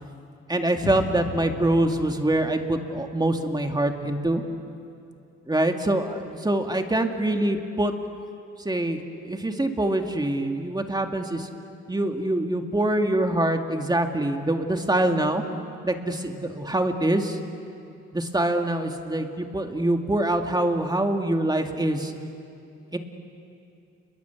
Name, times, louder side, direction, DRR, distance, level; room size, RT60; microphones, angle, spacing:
voice 1, 0.5-4.4 5.5-7.9 8.6-9.0 9.2-11.5 11.9-15.4 15.8-17.4 18.1-22.1 22.9-23.0, right 1 dB, 15° right, 4 dB, 2.3 m, -24 dB
sound 1, 0.8-4.0, left 7 dB, 40° left, 1.0 m, -38 dB
29.5 x 22.0 x 8.4 m, 2.6 s
cardioid pair, 90°, 30 cm